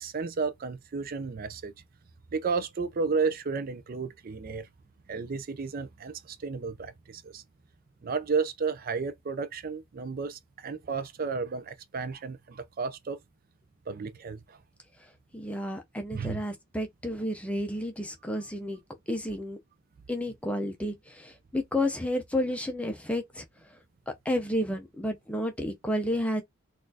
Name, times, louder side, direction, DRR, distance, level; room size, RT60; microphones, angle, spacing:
voice 1, 0.0-1.7 2.3-4.7 5.1-7.4 8.0-13.2 13.9-14.6 16.1-16.4, right 4 dB, 45° right, 0.4 m, -32 dB
voice 2, 15.3-18.8 19.1-19.6 20.1-23.4 24.3-26.4, left 1 dB, 5° left, 0.5 m, -31 dB
4.0 x 2.4 x 2.7 m
head